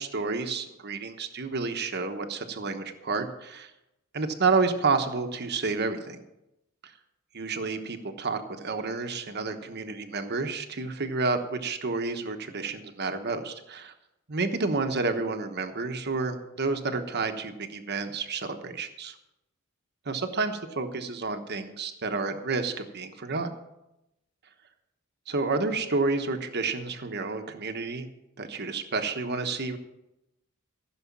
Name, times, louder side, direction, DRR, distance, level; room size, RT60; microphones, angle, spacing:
voice 1, 0.0-3.7 4.1-6.2 7.3-13.9 14.3-19.2 20.1-23.5 25.3-28.1 28.4-29.8, right 4 dB, 50° right, 7 dB, 1.1 m, -30 dB
15.0 x 6.5 x 7.3 m, 0.90 s
head